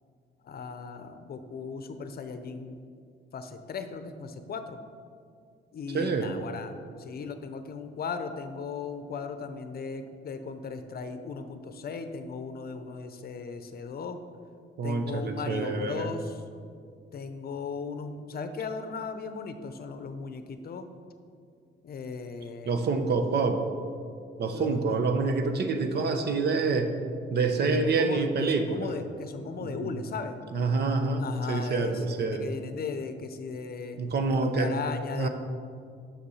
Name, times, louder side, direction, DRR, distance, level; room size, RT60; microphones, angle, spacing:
voice 1, 0.4-2.8 3.3-4.8 5.7-14.2 14.8-16.4 17.1-20.9 21.8-22.9 24.5-25.0 27.6-30.4 31.2-34.0 34.3-35.3, left 5 dB, 50° left, 8 dB, 0.7 m, -37 dB
voice 2, 5.9-6.3 14.8-16.1 22.6-23.6 24.4-26.9 27.3-28.9 29.6-29.9 30.5-32.5 34.0-34.7 35.1-35.3, right 4 dB, 55° right, 7 dB, 0.8 m, -27 dB
6.8 x 6.0 x 5.6 m, 2.2 s
cardioid pair, 90°, 20 cm